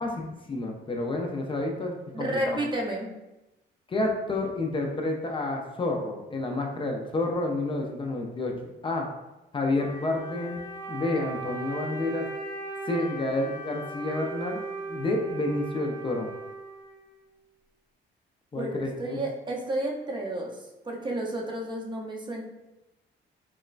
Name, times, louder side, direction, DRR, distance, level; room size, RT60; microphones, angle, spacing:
voice 1, 0.0-2.6 3.9-8.5 8.8-9.1 9.5-10.6 10.9-12.3 12.9-14.6 14.9-16.3 18.5-19.2, left 2 dB, 25° left, 1 dB, 0.4 m, -29 dB
voice 2, 2.1-3.1 18.5-20.6 20.8-22.4, right 1 dB, 25° right, -1 dB, 0.6 m, -31 dB
Wind instrument woodwind instrument, 9.7-17.3, right 3 dB, 75° right, 0.7 m, -38 dB
3.0 x 2.1 x 2.4 m, 0.96 s
cardioid pair, 90°, 20 cm